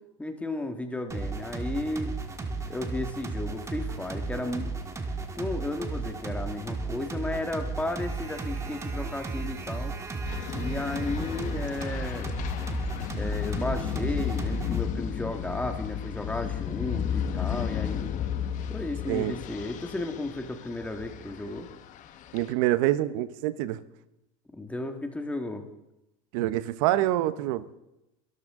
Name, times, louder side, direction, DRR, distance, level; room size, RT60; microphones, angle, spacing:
voice 1, 0.2-2.2 2.7-4.7 5.4-9.9 10.5-12.3 13.2-18.2 18.7-21.7 24.6-25.6, left 2 dB, 10° left, 5 dB, 1.8 m, -34 dB
sound 1, 1.1-14.8, right 3 dB, 15° right, 1.6 m, -34 dB
sound 2, 10.3-22.5, left 9 dB, 50° left, 1.2 m, -33 dB
voice 2, 22.3-23.8 26.3-27.7, right 14 dB, 70° right, 14 dB, 0.9 m, -26 dB
24.0 x 13.5 x 3.7 m, 0.90 s
supercardioid pair, 120°, 17 cm